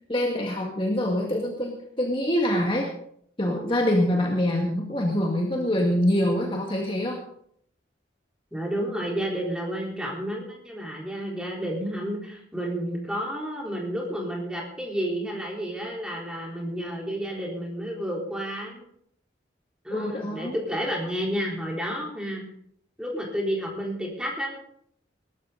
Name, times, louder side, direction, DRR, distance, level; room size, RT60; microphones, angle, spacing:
voice 1, 0.1-2.9 3.4-7.2 19.9-20.5, left 1 dB, 25° left, 0 dB, 2.0 m, -25 dB
voice 2, 8.5-18.8 19.8-22.4 23.0-24.5, equal, 5° right, -2 dB, 4.0 m, -31 dB
19.5 x 13.0 x 4.0 m, 0.66 s
head